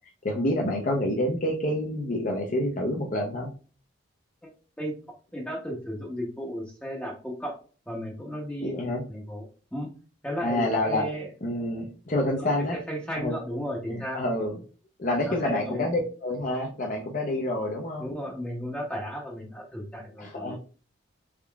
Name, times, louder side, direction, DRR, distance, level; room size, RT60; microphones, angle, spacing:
voice 1, 0.2-3.5 8.6-9.0 10.4-11.1 11.4-12.8 13.1-13.3 13.9-14.5 15.0-18.1 20.2-20.6, left 1 dB, 40° left, 0 dB, 0.5 m, -28 dB
voice 2, 5.3-7.6 7.9-8.7 9.1-9.4 9.7-9.9 10.2-11.3 12.2-14.2 15.3-15.9 18.0-20.6, equal, 5° left, -2 dB, 0.7 m, -34 dB
3.6 x 3.5 x 2.3 m, 0.38 s
head